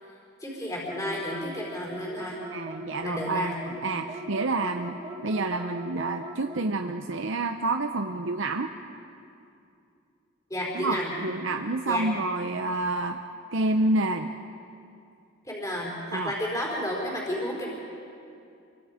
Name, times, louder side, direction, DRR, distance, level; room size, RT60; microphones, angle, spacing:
voice 1, 0.4-2.4 3.0-3.5 10.5-11.1 11.9-12.1 15.4-17.7, equal, 15° left, -2 dB, 4.3 m, -32 dB
sound 1, 0.9-6.7, equal, 25° right, 1.6 m, -40 dB
voice 2, 2.5-8.7 10.7-13.2 13.5-14.3 16.1-16.3, right 2 dB, 65° right, 5 dB, 0.8 m, -28 dB
28.0 x 24.0 x 5.1 m, 2.6 s
head